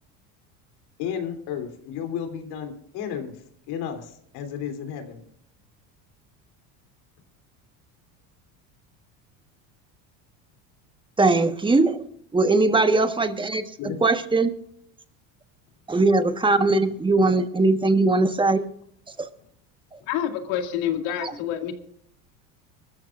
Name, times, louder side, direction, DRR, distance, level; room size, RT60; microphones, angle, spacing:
voice 1, 1.0-5.2 13.8-14.0 20.0-20.1, left 8 dB, 70° left, 6 dB, 3.3 m, -33 dB
voice 2, 11.2-12.0 12.3-13.6 14.0-14.5 15.9-18.6 19.2-19.3 21.2-21.3, right 3 dB, 10° right, 8 dB, 1.3 m, -20 dB
voice 3, 20.1-21.7, left 10 dB, 85° left, 5 dB, 2.3 m, -27 dB
23.5 x 13.5 x 2.5 m, 0.69 s
supercardioid pair, 110°, 40 cm